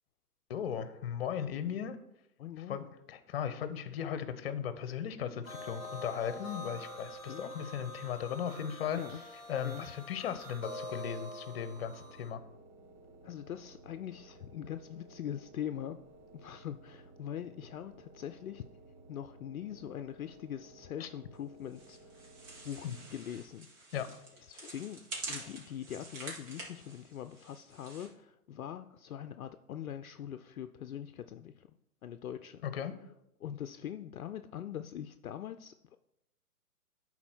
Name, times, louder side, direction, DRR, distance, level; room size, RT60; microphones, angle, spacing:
voice 1, 0.5-2.0 2.7-9.0 9.5-12.4 21.0-21.1 22.8-22.9 23.9-24.1 32.6-32.9, left 8 dB, 40° left, 12 dB, 0.8 m, -37 dB
voice 2, 2.4-2.9 7.3-7.5 9.0-9.2 9.6-9.9 13.2-16.0 16.3-18.6 19.1-22.1 22.6-22.9 23.1-23.7 24.4-25.0 25.3-31.7 32.0-32.7 33.4-36.0, left 10 dB, 65° left, 9 dB, 0.5 m, -42 dB
sound 1, 5.4-12.3, left 1 dB, 10° right, 3.5 m, -45 dB
sound 2, 11.8-23.5, right 2 dB, 70° right, 1.3 m, -57 dB
sound 3, 21.7-28.1, right 2 dB, 50° right, 2.8 m, -47 dB
11.0 x 4.3 x 4.4 m, 0.83 s
figure-of-eight pair, 120°, 46 cm